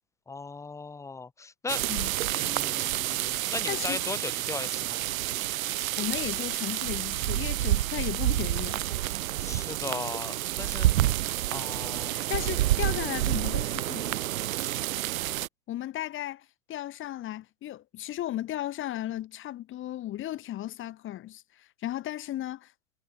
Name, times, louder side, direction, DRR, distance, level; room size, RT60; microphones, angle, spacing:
voice 1, 0.3-1.8 2.3-5.0 9.4-11.1 11.5-12.3, left 4 dB, 5° left, 1.1 m, -38 dB
sound 1, 1.7-15.5, right 15 dB, 55° right, 0.8 m, -29 dB
voice 2, 3.7-4.0 6.0-8.8 12.1-14.3 15.7-22.7, left 13 dB, 25° left, 2.3 m, -35 dB
hypercardioid pair, 115°, 48 cm